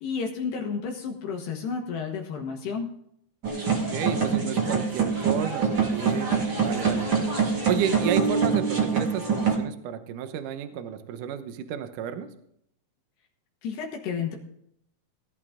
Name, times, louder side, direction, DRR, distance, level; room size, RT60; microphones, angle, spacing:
voice 1, 0.0-2.9 6.5-6.6 13.6-14.4, left 6 dB, 80° left, 1 dB, 3.4 m, -31 dB
sound 1, 3.4-9.5, right 5 dB, 35° right, 1.7 m, -25 dB
voice 2, 3.9-6.4 6.6-7.1 7.7-12.3, right 8 dB, 70° right, 9 dB, 2.0 m, -31 dB
18.0 x 11.5 x 3.7 m, 0.71 s
omnidirectional pair, 4.8 m